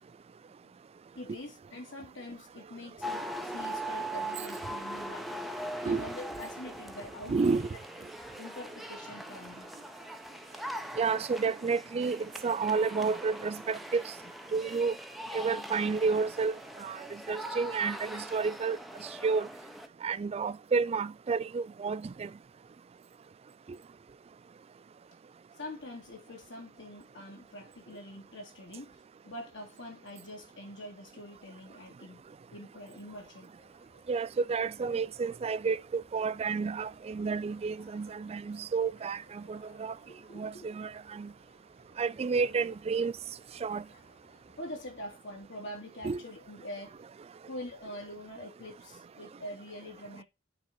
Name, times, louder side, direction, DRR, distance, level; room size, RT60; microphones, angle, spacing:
voice 1, 1.1-5.4 5.8-7.5 8.4-9.7 25.6-32.2 32.5-33.6 40.1-40.7 44.6-47.0 47.5-50.2, left 1 dB, 60° left, 2.5 m, -45 dB
sound 1, 3.0-19.9, right 1 dB, ahead, 0.8 m, -41 dB
voice 2, 7.3-7.7 11.0-14.1 14.5-15.0 15.3-18.8 19.2-19.5 20.0-22.3 34.1-39.9 40.3-41.3 42.0-43.1 43.6-43.8 46.0-46.2, right 4 dB, 30° right, 0.3 m, -30 dB
sound 2, 33.5-45.2, left 1 dB, 45° left, 2.3 m, -62 dB
9.2 x 4.0 x 4.6 m
head